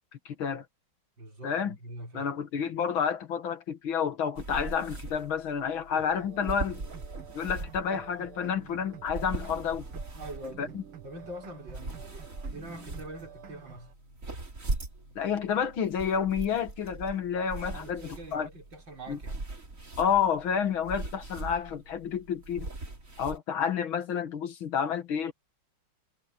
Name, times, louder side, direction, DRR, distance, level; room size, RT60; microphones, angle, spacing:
voice 1, 0.3-0.6 1.4-1.8 2.1-6.8 7.3-9.9 10.6-10.7 15.2-18.5 19.1-19.2 20.0-22.7 23.2-25.3, left 7 dB, 70° left, 2.3 m, -30 dB
voice 2, 1.2-2.3 10.1-10.8 11.0-13.9 17.7-19.5, right 1 dB, 60° right, 6.0 m, -44 dB
sound 1, 4.4-23.4, right 2 dB, 40° right, 3.5 m, -40 dB
sound 2, 5.9-13.9, right 9 dB, 90° right, 2.7 m, -49 dB
omnidirectional pair, 2.3 m